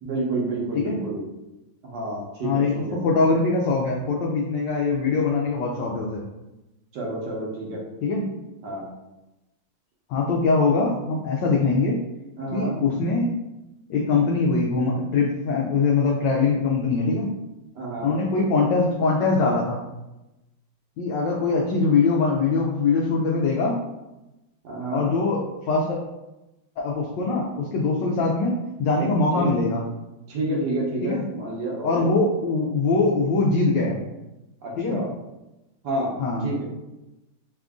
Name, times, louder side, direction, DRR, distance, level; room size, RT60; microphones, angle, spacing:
voice 1, 0.0-1.3 1.8-3.0 6.9-7.8 8.6-8.9 12.4-12.8 17.7-18.2 24.6-25.1 29.0-29.5 30.3-32.1 34.6-35.1 35.8-36.2 36.4-36.6, right 2 dB, 60° right, -4 dB, 1.2 m, -29 dB
voice 2, 2.4-6.2 8.0-8.2 10.1-12.0 12.5-13.4 13.9-17.3 18.0-19.8 21.0-23.8 24.9-25.4 25.7-26.0 26.8-29.8 31.0-31.2 31.8-34.0 34.8-35.0 36.2-36.5, left 3 dB, 75° left, -2 dB, 1.0 m, -22 dB
3.6 x 2.5 x 3.5 m, 0.98 s
omnidirectional pair, 2.4 m